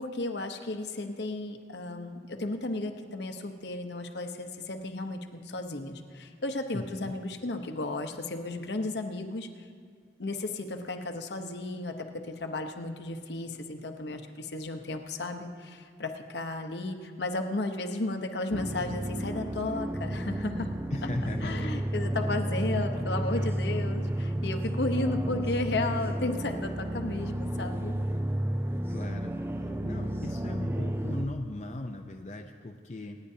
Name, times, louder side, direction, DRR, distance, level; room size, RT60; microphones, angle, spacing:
voice 1, 0.0-9.5 10.2-20.7 21.0-21.1 21.4-27.9, left 2 dB, 70° left, 5 dB, 0.9 m, -34 dB
voice 2, 6.7-7.1 20.9-21.7 28.9-29.3 29.8-33.2, left 2 dB, 40° left, 3 dB, 0.5 m, -37 dB
sound 1, 18.5-31.3, right 1 dB, 15° right, 0.4 m, -32 dB
27.0 x 9.9 x 2.8 m, 2.1 s
head